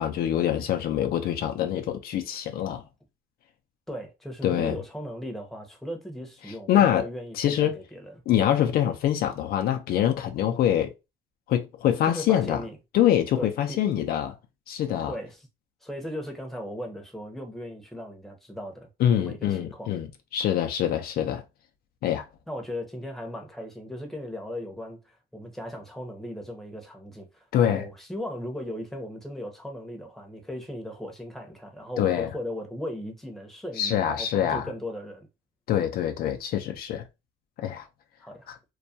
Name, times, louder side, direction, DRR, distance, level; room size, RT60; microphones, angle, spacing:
voice 1, 0.0-2.8 4.4-4.8 6.7-7.1 7.3-7.8 8.3-10.9 11.5-12.6 12.9-14.4 14.7-15.1 19.0-20.1 20.3-21.4 22.0-22.2 27.5-27.8 32.0-32.3 33.8-34.6 35.7-37.0 37.6-37.9 38.5-38.6, left 10 dB, 65° left, 0.4 m, -24 dB
voice 2, 3.9-8.2 12.0-12.8 13.4-13.8 15.1-15.5 15.8-18.9 19.2-19.9 22.5-35.3 38.2-38.5, left 1 dB, ahead, 0.7 m, -37 dB
2.3 x 2.1 x 2.6 m
cardioid pair, 110°, 17 cm